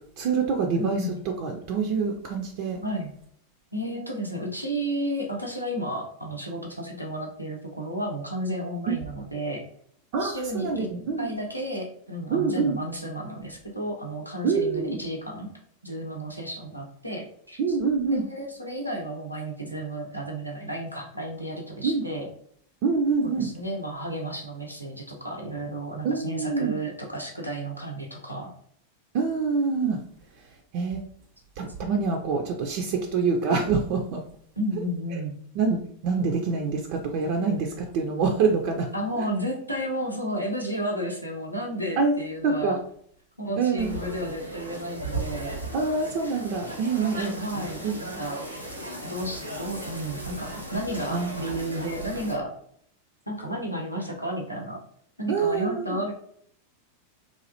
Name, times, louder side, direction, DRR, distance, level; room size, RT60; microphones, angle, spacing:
voice 1, 0.2-2.8 8.9-9.0 10.1-11.3 12.3-12.8 14.4-15.0 17.6-18.2 21.8-22.0 22.8-23.5 26.0-26.8 29.1-30.0 30.7-31.0 31.6-34.2 35.1-35.2 35.6-38.9 42.0-42.1 42.4-42.8 43.6-44.0 45.7-47.4 47.8-48.2 51.1-51.4 55.3-56.0, right 4 dB, 45° right, 2 dB, 0.3 m, -26 dB
voice 2, 0.7-1.2 2.8-3.1 3.7-9.6 10.2-10.9 11.2-15.5 15.8-17.6 18.1-22.3 23.4-28.5 34.6-35.3 38.9-42.8 43.4-45.5 47.4-48.4 49.0-52.5 53.3-54.8 55.2-56.1, right 1 dB, 90° left, -1 dB, 0.6 m, -32 dB
sound 1, 43.8-52.3, right 1 dB, 85° right, 0.6 m, -36 dB
3.0 x 2.3 x 2.7 m, 0.63 s
figure-of-eight pair, 90°, 0 cm